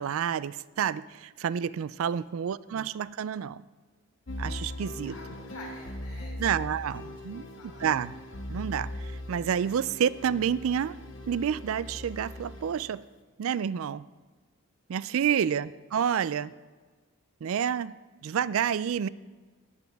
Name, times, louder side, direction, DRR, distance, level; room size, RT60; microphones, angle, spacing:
voice 1, 0.0-3.6 4.4-5.1 6.4-7.4 7.8-8.1 8.5-11.0 11.3-13.0 13.4-14.0 14.9-16.5 17.4-17.9 18.2-19.1, right 8 dB, 70° right, 18 dB, 0.3 m, -29 dB
voice 2, 2.1-2.4 5.0-6.9 7.3-8.1 15.3-15.6, left 1 dB, 85° left, -1 dB, 3.5 m, -50 dB
sound 1, 4.3-13.0, left 1 dB, 60° left, 1.1 m, -40 dB
18.5 x 8.2 x 3.5 m, 1.4 s
head